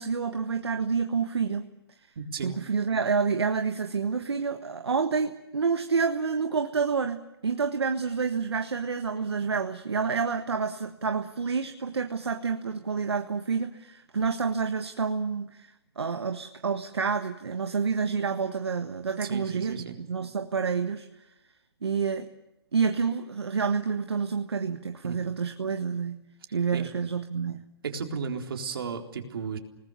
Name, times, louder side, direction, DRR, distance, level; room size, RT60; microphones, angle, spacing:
voice 1, 0.0-1.7 2.4-21.1 21.8-22.3 22.7-26.2 26.5-27.6, right 5 dB, 75° right, 7 dB, 1.5 m, -28 dB
voice 2, 2.2-2.5 19.2-19.9 25.0-25.2 26.7-26.8 27.8-29.6, right 6 dB, 60° right, 3 dB, 3.9 m, -34 dB
29.0 x 19.5 x 7.0 m, 0.93 s
figure-of-eight pair, 130°, 14 cm